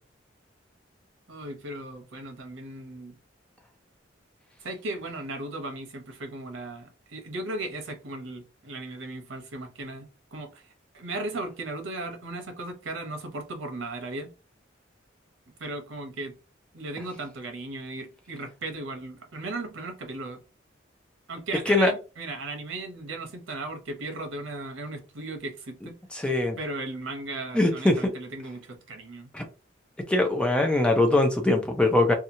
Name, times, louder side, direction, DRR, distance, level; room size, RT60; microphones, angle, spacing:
voice 1, 1.3-3.2 4.6-10.6 10.9-14.3 15.6-16.3 16.7-20.4 21.3-25.9 26.6-29.3, right 2 dB, 90° right, 0.8 m, -36 dB
voice 2, 26.1-26.6 27.5-28.1 29.3-29.4 30.1-32.1, left 2 dB, 5° left, 0.5 m, -22 dB
2.8 x 2.3 x 2.7 m
head